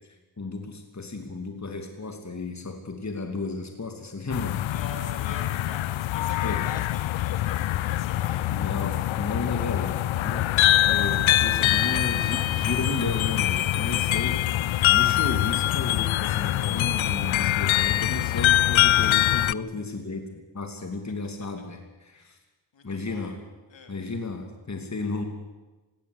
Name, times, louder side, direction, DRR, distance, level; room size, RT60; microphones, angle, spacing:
voice 1, 0.4-4.6 6.4-6.6 8.5-22.4 22.8-23.4 23.9-25.2, left 3 dB, 35° left, 4 dB, 2.8 m, -33 dB
sound 1, 4.3-19.5, left 14 dB, 90° left, 0.6 m, -24 dB
voice 2, 4.7-8.4 11.1-12.0 13.6-14.1 22.1-22.4 22.7-23.4 23.7-23.9, left 4 dB, 70° left, 4 dB, 3.8 m, -44 dB
19.0 x 16.5 x 9.9 m, 1.2 s
cardioid pair, 55°, 46 cm